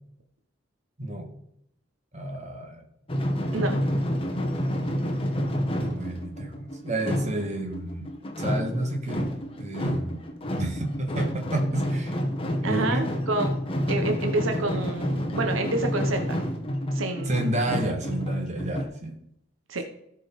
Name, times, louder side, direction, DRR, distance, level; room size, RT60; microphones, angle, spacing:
voice 1, 1.0-1.3 2.1-2.8 5.5-9.3 9.6-10.2 10.6-12.2 12.7-13.1 17.3-19.1, right 1 dB, 35° right, 2 dB, 2.0 m, -30 dB
sound 1, 3.1-18.8, equal, 30° left, 1.3 m, -29 dB
voice 2, 12.6-13.5 13.9-16.4 16.9-17.4 19.7-19.9, right 2 dB, 80° right, 4 dB, 1.1 m, -28 dB
16.0 x 5.4 x 4.2 m, 0.77 s
head